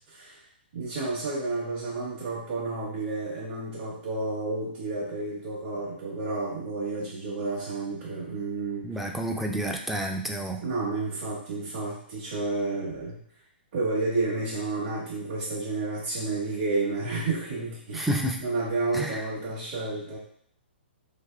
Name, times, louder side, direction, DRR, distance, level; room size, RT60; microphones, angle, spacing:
voice 1, 0.1-0.4 0.7-8.9 10.6-13.2 13.7-18.1 18.4-20.2, right 3 dB, 50° right, -10 dB, 1.5 m, -31 dB
voice 2, 8.8-10.6 17.9-18.4 18.9-19.2, right 1 dB, 5° right, 2 dB, 0.3 m, -29 dB
3.3 x 3.1 x 2.3 m, 0.65 s
hypercardioid pair, 135°, 6 cm